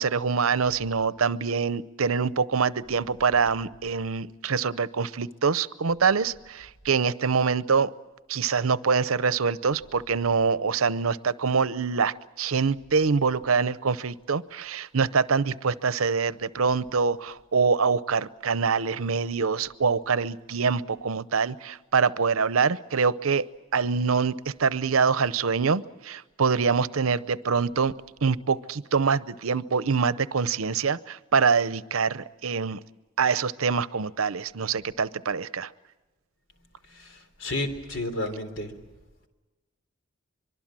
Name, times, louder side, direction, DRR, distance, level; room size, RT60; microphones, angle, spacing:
voice 1, 0.0-7.9 8.3-23.4 23.7-27.9 28.2-32.8 33.2-35.7, right 5 dB, 85° right, 16 dB, 0.7 m, -25 dB
voice 2, 36.8-38.8, left 1 dB, 65° left, 8 dB, 3.5 m, -32 dB
24.5 x 23.5 x 7.5 m, 1.2 s
head